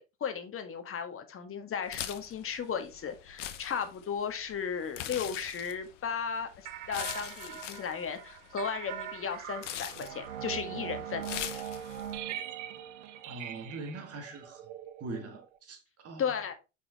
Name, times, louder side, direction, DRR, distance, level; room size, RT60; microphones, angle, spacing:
voice 1, 0.0-11.4 16.2-16.5, left 7 dB, 40° left, 1.6 m, -35 dB
sound 1, 1.8-12.2, left 11 dB, 90° left, 0.9 m, -43 dB
sound 2, 6.6-15.6, right 10 dB, 85° right, 0.8 m, -41 dB
voice 2, 13.3-14.6 15.0-16.4, right 3 dB, 40° right, 2.4 m, -42 dB
5.6 x 5.2 x 4.1 m
hypercardioid pair, 80°, 35 cm